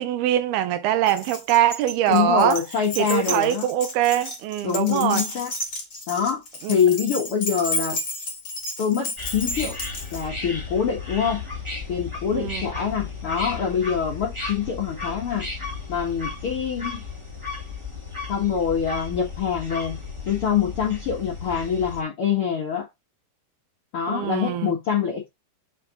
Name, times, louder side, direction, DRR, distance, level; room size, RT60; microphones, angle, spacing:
voice 1, 0.0-2.6 3.0-5.3 6.6-6.8 12.3-12.6 24.1-24.7, right 12 dB, 85° right, 2.7 m, -23 dB
Keys jangling, 1.1-10.3, left 1 dB, 30° left, 1.9 m, -32 dB
voice 2, 2.1-3.7 4.6-5.5 6.1-6.4 6.7-8.0 8.8-9.8 10.1-11.4 11.9-15.5 15.9-17.0 18.3-20.0 20.3-22.9 23.9-25.3, left 7 dB, 65° left, 1.4 m, -25 dB
sound 1, 9.2-22.0, left 4 dB, 55° right, 0.3 m, -34 dB
6.6 x 4.2 x 4.9 m
omnidirectional pair, 4.5 m